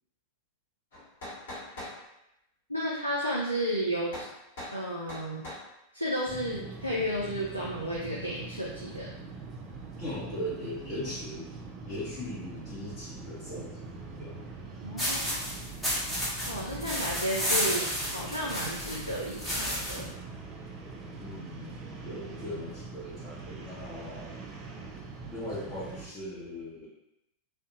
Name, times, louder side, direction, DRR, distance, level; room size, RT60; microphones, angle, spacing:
sound 1, 0.9-2.0 4.1-4.3 4.6-4.8 5.1-5.7, left 1 dB, 60° left, 1.2 m, -41 dB
voice 1, 2.7-4.3 4.7-5.5 5.9-9.1 14.8-15.4 16.5-20.1, equal, 85° left, -5 dB, 0.4 m, -32 dB
sound 2, 6.3-26.1, right 3 dB, 30° right, 0.4 m, -43 dB
voice 2, 10.0-11.5 11.9-14.4 21.2-24.4 25.3-26.9, left 1 dB, 35° left, -10 dB, 0.8 m, -39 dB
sound 3, 15.0-20.1, equal, 10° left, 0.9 m, -32 dB
2.6 x 2.1 x 2.7 m, 0.87 s
figure-of-eight pair, 90°, 0 cm